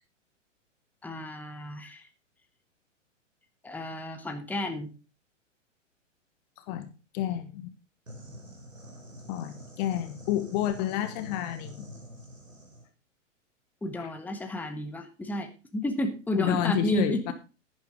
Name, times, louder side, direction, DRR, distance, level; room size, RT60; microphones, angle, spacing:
voice 1, 1.0-2.0 3.6-4.9 13.8-17.3, left 1 dB, 5° left, 1.4 m, -31 dB
voice 2, 7.1-7.7 9.3-11.9 14.0-14.1 16.3-17.3, left 12 dB, 35° left, 1.2 m, -30 dB
sound 1, 8.1-12.9, equal, 85° right, 4.2 m, -46 dB
11.0 x 10.5 x 3.9 m
figure-of-eight pair, 110°, 38 cm